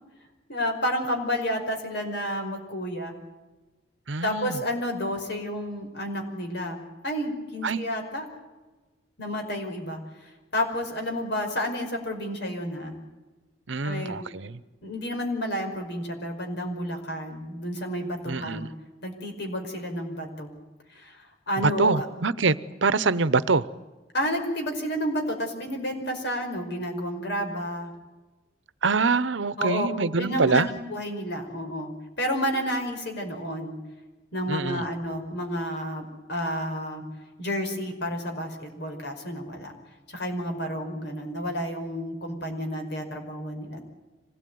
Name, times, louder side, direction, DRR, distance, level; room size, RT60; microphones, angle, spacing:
voice 1, 0.5-3.1 4.2-8.2 9.2-10.0 10.5-13.0 13.8-14.2 14.8-18.7 19.0-20.5 21.0-21.2 21.5-22.1 24.1-27.9 29.6-29.9 30.2-31.9 32.2-33.7 34.3-37.0 37.4-39.7 40.1-43.8, equal, 65° left, 5.4 m, -30 dB
voice 2, 4.1-4.6 7.6-7.8 13.7-14.6 18.3-18.7 21.6-22.5 22.8-23.7 28.8-30.7 34.5-34.8, right 4 dB, 80° right, 0.9 m, -24 dB
25.5 x 18.5 x 9.4 m
head